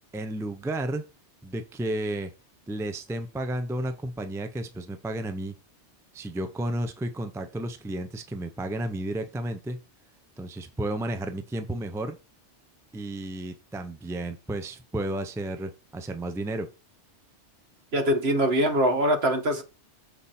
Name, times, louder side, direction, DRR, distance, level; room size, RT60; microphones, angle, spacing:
voice 1, 0.1-1.0 1.4-2.3 2.7-5.5 6.1-9.8 10.4-12.2 12.9-16.7, right 1 dB, 5° right, 0.6 m, -32 dB
voice 2, 17.9-19.6, equal, 60° right, 1.6 m, -23 dB
7.1 x 4.8 x 4.3 m
omnidirectional pair, 1.2 m